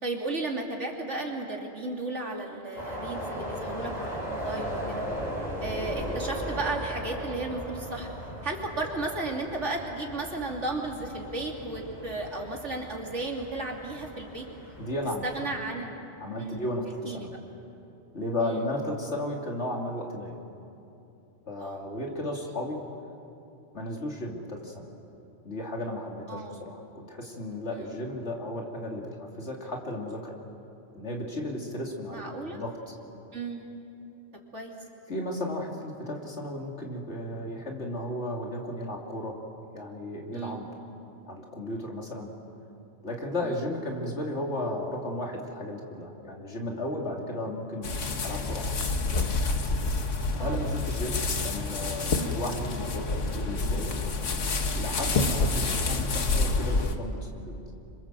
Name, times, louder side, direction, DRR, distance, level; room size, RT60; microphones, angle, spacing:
voice 1, 0.0-5.0 5.6-8.1 8.4-14.4 15.2-16.1 16.4-16.6 17.0-17.3 18.4-18.6 21.6-21.8 26.3-26.6 27.7-27.9 32.1-32.6 33.3-33.7 34.5-34.7 40.3-40.6 43.4-43.6 50.4-50.6 52.1-52.4 55.1-55.4, right 2 dB, 75° right, 0 dB, 3.3 m, -34 dB
sound 1, 2.8-15.5, equal, 35° left, 4.5 m, -37 dB
voice 2, 14.8-15.3 16.2-17.4 18.1-20.4 21.5-22.8 23.7-24.9 25.4-30.3 30.9-32.3 32.5-32.9 35.1-39.4 39.7-40.7 41.3-42.3 43.0-47.9 48.2-48.8 50.4-54.0 54.8-57.5, left 1 dB, 65° left, 0 dB, 3.2 m, -34 dB
sound 2, 47.8-56.9, left 3 dB, 85° left, 1.8 m, -28 dB
28.0 x 25.5 x 7.6 m, 2.8 s
omnidirectional pair, 1.2 m